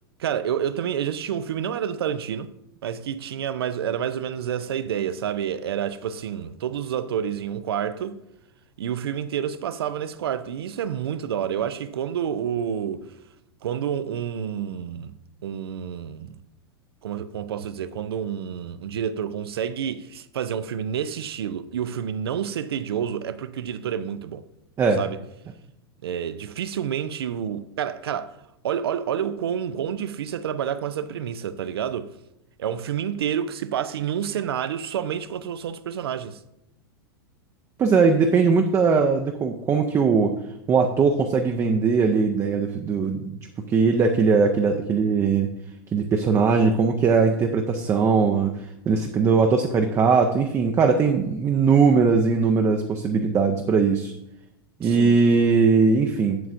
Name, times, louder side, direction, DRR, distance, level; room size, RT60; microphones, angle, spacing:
voice 1, 0.2-2.5 2.8-8.2 8.8-13.0 13.6-15.1 15.4-16.4 17.0-24.4 25.0-25.2 26.0-28.4 28.6-32.1 32.6-36.4 54.8-55.1, right 9 dB, 80° right, 0.5 m, -29 dB
voice 2, 37.8-40.3 40.7-43.4 43.7-45.5 45.9-48.6 48.9-54.1 54.8-56.4, right 5 dB, 20° right, 0.5 m, -20 dB
7.6 x 6.9 x 2.5 m
hypercardioid pair, 110°, 13 cm